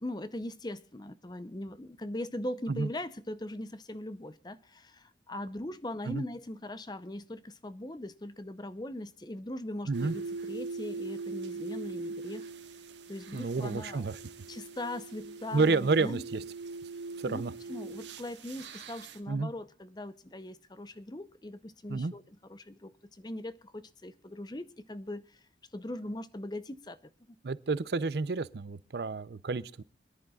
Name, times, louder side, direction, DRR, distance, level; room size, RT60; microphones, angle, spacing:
voice 1, 0.0-12.5 13.1-14.1 14.5-16.2 17.2-17.4 17.7-25.4 25.7-27.0, left 1 dB, 25° left, 0.7 m, -40 dB
sound 1, 9.9-19.2, right 3 dB, 90° right, 1.5 m, -41 dB
voice 2, 13.3-14.2 15.5-16.4 17.2-17.5 19.3-19.5 21.9-22.1 27.4-29.8, right 3 dB, 65° right, 0.5 m, -30 dB
25.5 x 10.5 x 2.4 m
head